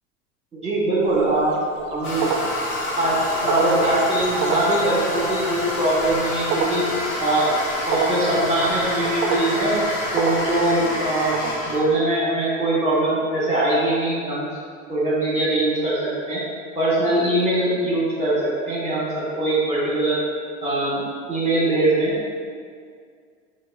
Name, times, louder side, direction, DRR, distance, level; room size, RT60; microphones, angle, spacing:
voice 1, 0.5-1.5 1.9-2.4 3.0-6.9 7.2-7.6 7.8-9.8 10.1-14.5 14.9-16.4 16.7-20.2 20.6-22.1, right 1 dB, 15° right, -7 dB, 1.4 m, -22 dB
sound 1, 1.0-12.0, right 4 dB, 40° right, 0.4 m, -30 dB
Toilet flush, 2.0-11.8, left 1 dB, 55° left, 1.4 m, -28 dB
5.2 x 2.3 x 2.6 m, 2.1 s
hypercardioid pair, 105°, 41 cm